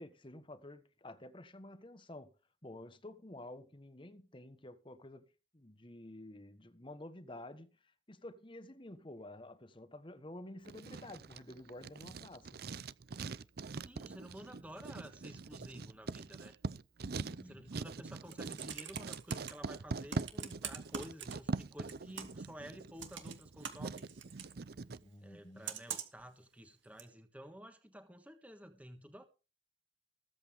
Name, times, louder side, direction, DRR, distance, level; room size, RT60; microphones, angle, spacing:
voice 1, 0.0-2.3 2.6-5.2 5.5-7.7 8.1-12.6 17.0-17.7 25.0-25.7, left 1 dB, 25° left, 1.3 m, -51 dB
Writing, 10.7-25.0, right 4 dB, 55° right, 0.5 m, -43 dB
voice 2, 13.8-16.5 17.4-24.1 25.2-29.3, equal, 10° right, 1.4 m, -52 dB
Computer keyboard, 18.1-19.5 20.1-21.6 21.9-22.5 23.0-24.5 25.6-26.2 27.0-27.1, right 8 dB, 80° right, 2.3 m, -43 dB
21.0 x 8.3 x 3.7 m
head